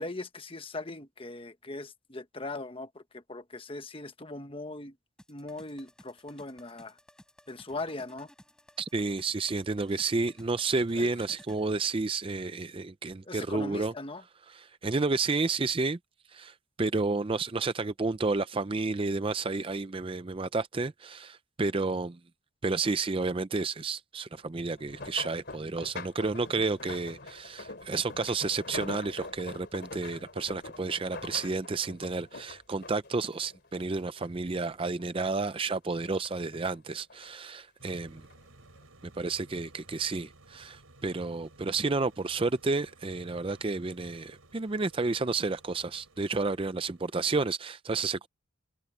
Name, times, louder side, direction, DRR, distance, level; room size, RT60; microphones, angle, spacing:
voice 1, 0.0-5.0 5.3-7.0 7.5-8.3 10.9-11.1 13.3-14.2, left 2 dB, 25° left, 1.1 m, -40 dB
sound 1, 5.2-11.7, equal, 5° left, 4.7 m, -57 dB
voice 2, 8.8-13.9 14.6-16.0 16.3-22.2 22.6-38.2 39.2-48.3, right 3 dB, 25° right, 0.5 m, -31 dB
sound 2, 24.7-34.3 34.6-35.6 36.0-37.3 38.1-38.4 38.8-38.9, left 3 dB, 50° left, 3.2 m, -44 dB
sound 3, 37.8-47.5, right 2 dB, 80° right, 5.3 m, -57 dB
head